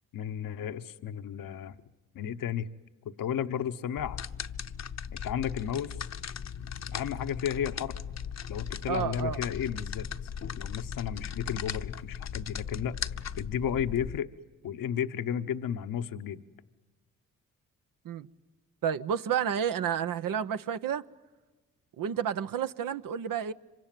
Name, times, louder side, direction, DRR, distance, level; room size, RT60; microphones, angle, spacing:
voice 1, 0.1-1.7 2.1-2.7 3.2-4.2 5.1-5.9 6.9-7.9 8.5-10.3 10.6-13.0 13.4-14.3 14.6-16.4, left 9 dB, 75° left, 1.1 m, -33 dB
sound 1, 4.0-14.2, left 8 dB, 50° left, 0.9 m, -38 dB
voice 2, 8.9-9.4 18.0-18.3 18.8-21.0 22.0-23.5, right 8 dB, 70° right, 1.0 m, -30 dB
26.0 x 24.5 x 9.2 m
supercardioid pair, 50°, 34 cm